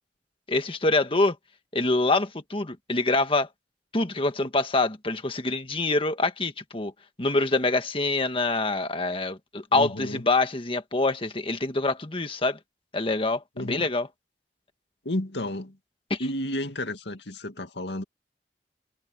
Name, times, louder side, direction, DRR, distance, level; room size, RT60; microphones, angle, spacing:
voice 1, 0.5-1.4 1.7-3.5 3.9-6.9 7.2-12.6 12.9-14.1 16.1-16.2, left 2 dB, 30° left, 1.6 m, -25 dB
voice 2, 9.7-10.2 13.6-13.9 15.0-15.8 16.2-18.0, left 1 dB, 75° left, 2.3 m, -32 dB
head